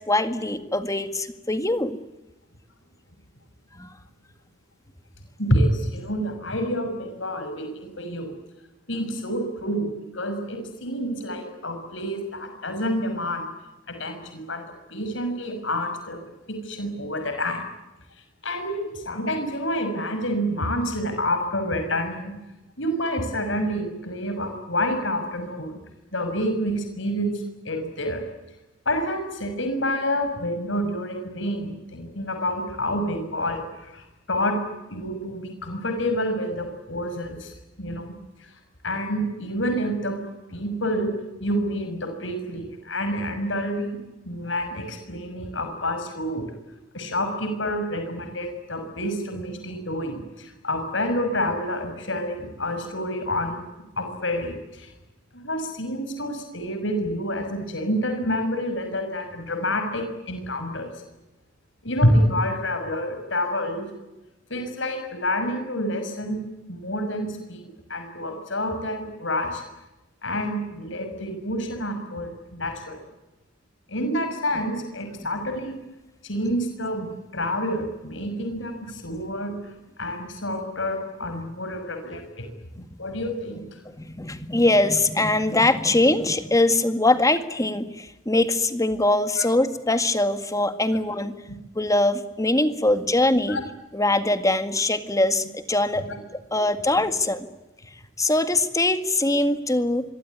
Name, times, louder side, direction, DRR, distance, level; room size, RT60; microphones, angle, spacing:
voice 1, 0.1-2.0 3.8-3.9 84.0-91.3 91.8-93.6 93.9-96.0 96.5-97.5 98.2-100.0, left 2 dB, 15° left, 9 dB, 1.9 m, -22 dB
voice 2, 5.4-8.3 8.9-13.4 13.9-14.6 14.9-16.2 16.5-17.6 18.4-22.3 22.8-25.8 26.1-28.2 28.9-34.6 34.9-38.1 38.4-38.5 38.8-40.2 40.5-41.1 41.4-43.9 44.3-46.4 46.9-53.6 54.0-54.9 55.3-60.9 61.8-63.9 64.5-66.4 66.7-69.6 70.2-73.0 73.9-75.7 76.2-79.7 80.0-82.5 83.0-83.7 89.4-89.5 93.5-93.6 96.0-96.2, equal, 65° left, 6 dB, 6.1 m, -28 dB
26.0 x 23.0 x 9.6 m, 1.0 s
head